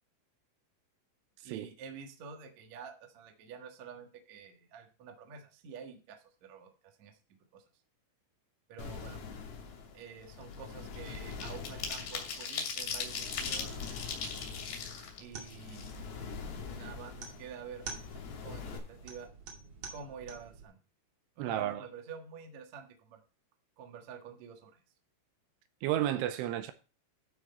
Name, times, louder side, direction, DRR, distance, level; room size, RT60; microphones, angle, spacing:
voice 1, 1.4-7.2 7.5-7.6 8.7-9.2 9.9-14.0 15.2-15.9 16.6-17.9 18.2-19.3 19.9-20.8 21.4-23.2 23.8-24.8, right 6 dB, 65° right, 1.7 m, -48 dB
sound 1, 8.8-18.8, left 5 dB, 80° left, 5.1 m, -44 dB
sound 2, 9.3-9.6 9.9-16.3 16.7-16.8 17.1-18.1 18.4-18.6 18.9-19.2, left 6 dB, 55° left, 3.7 m, -40 dB
sound 3, 15.2-20.6, right 4 dB, 45° right, 2.1 m, -48 dB
voice 2, 21.4-21.8 25.8-26.7, right 12 dB, 80° right, 3.1 m, -32 dB
13.0 x 6.3 x 4.3 m
omnidirectional pair, 5.9 m